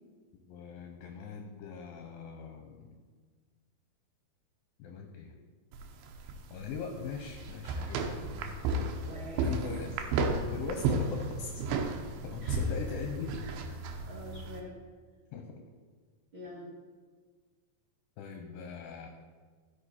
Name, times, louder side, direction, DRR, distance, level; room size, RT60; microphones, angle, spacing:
voice 1, 0.3-2.9 4.8-5.4 6.5-8.3 9.4-10.1 10.4-11.6 12.2-13.8 15.3-15.6 18.2-19.1, left 5 dB, 75° left, 3 dB, 2.3 m, -41 dB
sound 1, 5.7-14.6, right 3 dB, 80° right, 2.6 m, -33 dB
voice 2, 9.0-9.5 11.6-12.0 12.4-12.6 14.0-14.8 16.3-16.7, equal, 40° right, -6 dB, 2.1 m, -45 dB
14.5 x 5.3 x 4.3 m, 1.5 s
omnidirectional pair, 4.5 m